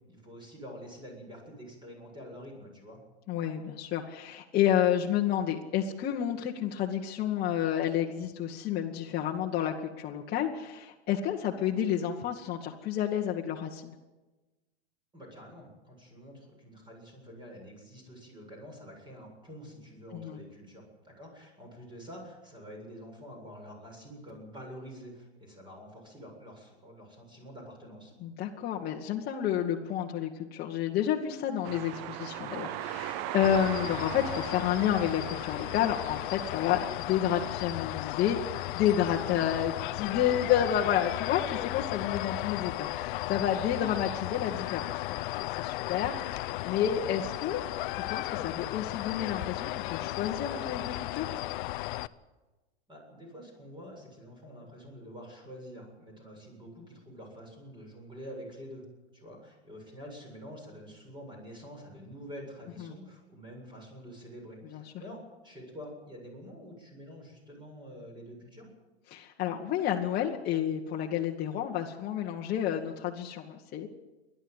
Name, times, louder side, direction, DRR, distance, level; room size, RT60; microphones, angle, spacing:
voice 1, 0.0-3.0 15.1-28.1 52.9-58.8 59.1-68.7, equal, 15° right, 1 dB, 7.7 m, -47 dB
voice 2, 3.3-13.9 20.1-20.4 28.2-38.4 38.7-47.6 47.9-51.3 64.7-64.8 69.1-73.9, left 10 dB, 30° left, -1 dB, 1.6 m, -30 dB
sound 1, 31.6-37.0, right 13 dB, 40° right, 0.8 m, -39 dB
sound 2, 33.4-52.1, left 17 dB, 50° left, 0.7 m, -35 dB
29.5 x 11.5 x 8.1 m, 1.1 s
hypercardioid pair, 125°, 33 cm